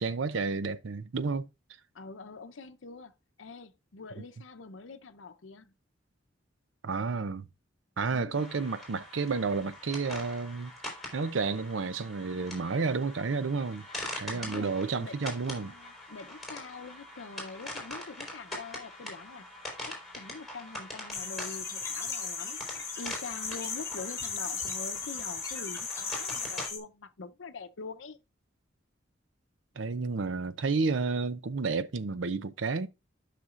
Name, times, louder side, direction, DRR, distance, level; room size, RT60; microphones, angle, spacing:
voice 1, 0.0-1.5 6.8-7.5 8.0-10.7 11.1-13.9 14.2-15.7 29.8-32.9, right 4 dB, 80° right, 0.6 m, -31 dB
voice 2, 1.9-3.1 3.4-5.7 8.1-8.4 14.3-19.5 19.9-22.6 23.0-28.2, left 4 dB, 80° left, 0.7 m, -44 dB
sound 1, 8.3-26.7, left 1 dB, ahead, 4.0 m, -43 dB
sound 2, 21.1-26.8, left 5 dB, 15° left, 2.0 m, -36 dB
12.5 x 5.9 x 2.5 m
head